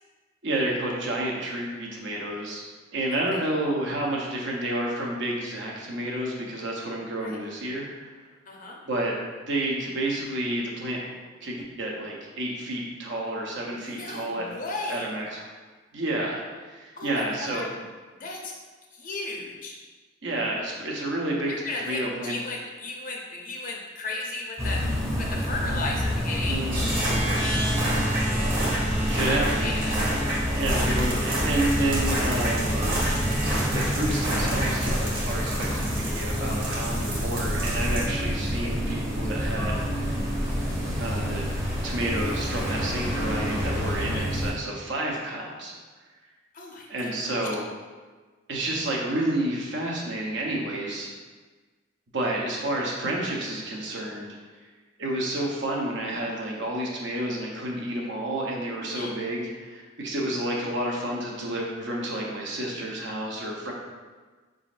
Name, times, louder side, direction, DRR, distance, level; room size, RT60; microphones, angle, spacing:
voice 1, 0.4-2.6 2.9-7.9 8.9-9.2 9.5-11.1 11.4-14.5 14.9-15.4 15.9-17.7 20.2-21.6 21.8-22.4 26.5-27.2 29.0-29.7 30.6-32.8 33.7-40.2 41.0-41.5 41.8-45.7 46.9-47.7 48.5-51.1 52.1-54.3 55.0-63.7, right 1 dB, 65° right, -2 dB, 0.8 m, -30 dB
voice 2, 3.1-3.4 7.2-7.4 8.5-8.8 13.7-15.1 17.0-17.8 18.2-18.5 18.9-19.7 21.5-26.6 27.3-27.6 29.1-30.1 44.0-44.3 46.5-47.4 58.8-59.1, left 2 dB, 45° left, -1 dB, 0.6 m, -35 dB
sound 1, 24.6-44.5, equal, 15° right, 0.8 m, -29 dB
sound 2, 26.7-44.2, right 1 dB, 45° right, 1.2 m, -30 dB
4.9 x 3.7 x 2.5 m, 1.4 s
head